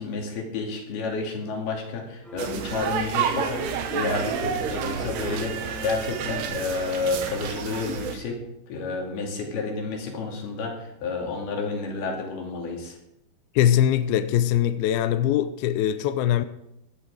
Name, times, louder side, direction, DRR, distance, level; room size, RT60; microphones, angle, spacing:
voice 1, 0.0-8.4 8.7-13.0, left 3 dB, 60° left, 4.4 m, -30 dB
sound 1, 2.2-7.3, right 2 dB, ahead, 3.0 m, -43 dB
sound 2, 2.4-8.2, right 6 dB, 70° right, 3.2 m, -29 dB
voice 2, 13.6-16.5, left 11 dB, 85° left, 2.2 m, -22 dB
16.5 x 11.5 x 4.9 m
omnidirectional pair, 5.1 m